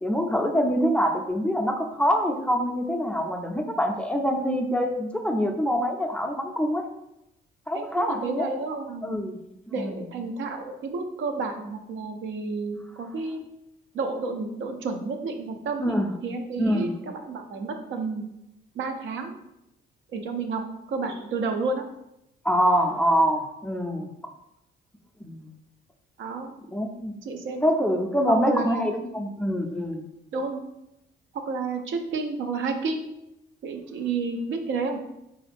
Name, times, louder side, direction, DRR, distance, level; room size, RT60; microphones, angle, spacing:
voice 1, 0.0-6.8 7.7-8.5 9.0-9.4 9.8-10.0 15.8-16.1 16.6-16.9 22.4-24.1 25.2-25.5 26.7-27.1 27.6-30.0, equal, 5° left, 2 dB, 0.4 m, -25 dB
voice 2, 7.7-9.2 9.7-13.4 13.9-15.9 16.2-18.2 18.7-19.3 20.1-20.6 20.9-21.8 26.2-26.5 27.2-27.6 28.3-28.9 30.3-30.6 31.5-33.0 33.6-35.0, right 4 dB, 75° right, 4 dB, 0.6 m, -31 dB
3.9 x 2.5 x 3.3 m, 0.86 s
cardioid pair, 90°, 20 cm